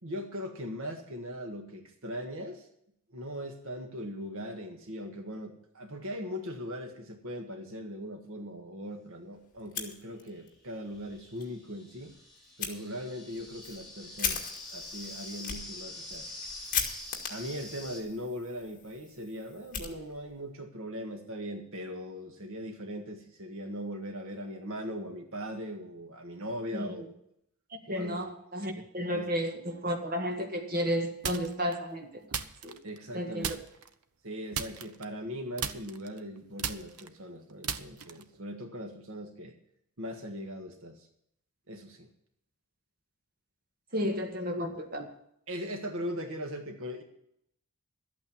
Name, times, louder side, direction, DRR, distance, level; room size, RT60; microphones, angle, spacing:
voice 1, 0.0-2.7 3.1-12.1 12.6-14.4 14.7-16.3 17.3-27.1 27.9-28.2 28.7-28.8 29.1-29.2 32.8-33.5 34.2-39.5 40.0-41.1 41.7-42.1 44.5-44.7 45.5-47.0, equal, 65° right, 1.7 m, -39 dB
sound 1, 9.5-9.6 10.5-18.0, left 2 dB, ahead, 4.2 m, -45 dB
Fire, 9.6-10.5 10.9-11.0 11.4-11.5 12.6-12.7 13.3-20.5, left 6 dB, 35° left, 2.2 m, -38 dB
voice 2, 27.9-32.1 32.6-32.8 33.1-33.6 43.9-45.0, equal, 40° right, 1.8 m, -32 dB
sound 2, 31.2-31.7 32.3-33.1 33.4-33.9 34.5-35.3 35.6-38.4, right 7 dB, 90° right, 0.9 m, -36 dB
12.5 x 8.8 x 7.1 m
head